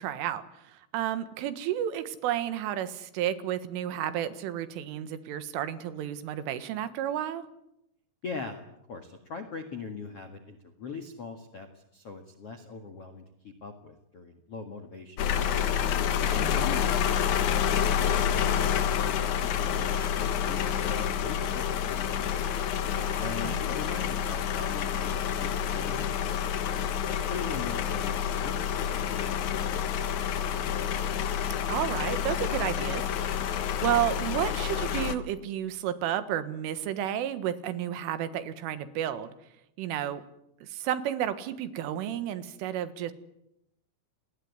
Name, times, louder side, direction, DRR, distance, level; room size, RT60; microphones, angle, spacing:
voice 1, 0.0-7.5 16.3-16.8 23.2-23.6 31.7-39.3 39.8-40.2 40.6-43.1, right 11 dB, 80° right, 12 dB, 4.0 m, -32 dB
voice 2, 8.2-8.6 8.9-15.6 16.3-22.5 23.2-26.9 27.3-30.3, left 5 dB, 60° left, 6 dB, 1.6 m, -41 dB
sound 1, 15.2-35.2, left 8 dB, 85° left, 1.6 m, -28 dB
29.0 x 19.5 x 9.7 m, 0.82 s
omnidirectional pair, 5.7 m